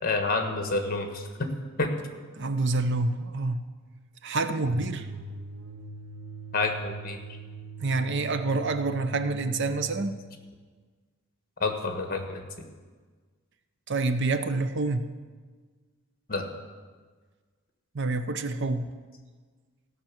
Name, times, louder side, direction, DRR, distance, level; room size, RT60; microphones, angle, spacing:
voice 1, 0.0-1.5 1.8-1.9 6.5-7.2 11.6-12.4 16.3-16.5, left 3 dB, 45° left, 5 dB, 1.4 m, -28 dB
voice 2, 2.4-3.6 4.2-5.1 7.8-10.1 13.9-15.1 17.9-18.9, right 3 dB, 60° right, 9 dB, 0.7 m, -27 dB
sound 1, 4.6-10.3, right 4 dB, 90° right, 0.8 m, -41 dB
16.0 x 6.0 x 7.3 m, 1.5 s
head